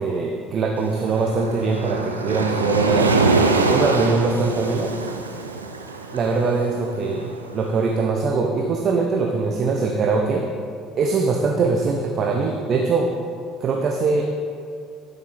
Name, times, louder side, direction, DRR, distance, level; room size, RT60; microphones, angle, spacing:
voice 1, 0.0-3.2 3.7-4.9 6.1-10.5 11.0-13.1 13.6-14.2, right 4 dB, 45° right, 2 dB, 0.8 m, -22 dB
Waves surf, 0.8-7.9, right 3 dB, 85° right, 0.5 m, -24 dB
12.5 x 6.9 x 4.1 m, 2.4 s
figure-of-eight pair, 55°, 0 cm